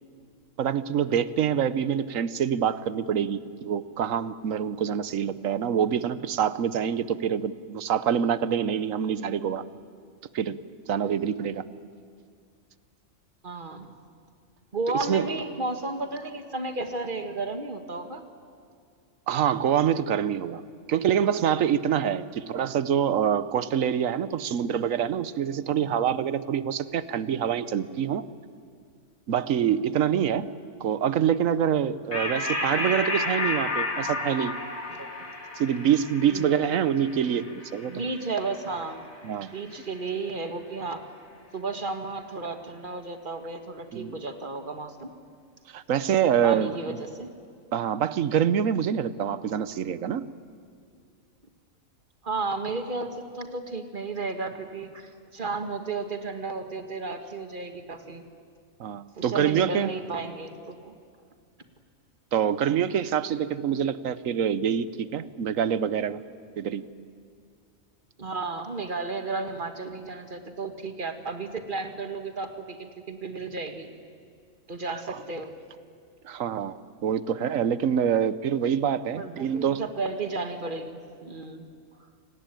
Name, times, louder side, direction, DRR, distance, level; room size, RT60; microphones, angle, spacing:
voice 1, 0.6-9.6 10.3-10.6 10.9-11.6 14.9-15.3 19.3-20.6 20.9-28.2 29.3-30.5 30.8-34.6 35.5-38.0 39.2-39.5 43.9-44.2 45.7-46.7 47.7-50.3 58.8-59.9 62.3-66.2 66.6-66.9 75.1-75.2 76.2-79.8, right 8 dB, 75° right, 15 dB, 1.2 m, -26 dB
voice 2, 13.4-13.9 14.7-18.3 34.9-35.1 36.3-36.6 37.9-39.0 39.4-41.1 41.5-45.1 46.4-47.3 52.2-58.2 59.2-61.0 68.2-73.9 74.7-75.5 79.2-81.7, right 3 dB, 40° right, 7 dB, 1.9 m, -33 dB
sound 1, 32.1-39.0, left 2 dB, 80° left, 3.7 m, -32 dB
28.5 x 18.5 x 9.1 m, 2.2 s
omnidirectional pair, 1.4 m